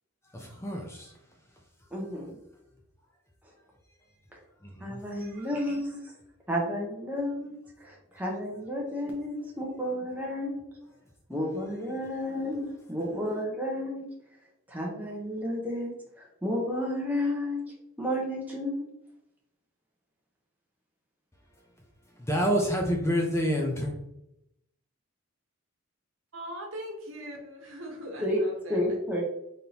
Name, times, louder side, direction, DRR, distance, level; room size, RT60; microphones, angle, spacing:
voice 1, 0.3-1.1 4.6-5.0 22.2-23.9, equal, 10° left, 0.5 m, -28 dB
voice 2, 1.9-2.4 4.8-6.0 6.5-10.6 11.3-14.0 14.7-17.6 18.0-18.9 28.2-28.4 28.7-29.2, left 1 dB, 10° right, 0.8 m, -31 dB
voice 3, 26.3-28.8, equal, 65° right, 1.1 m, -40 dB
4.0 x 3.5 x 2.8 m
head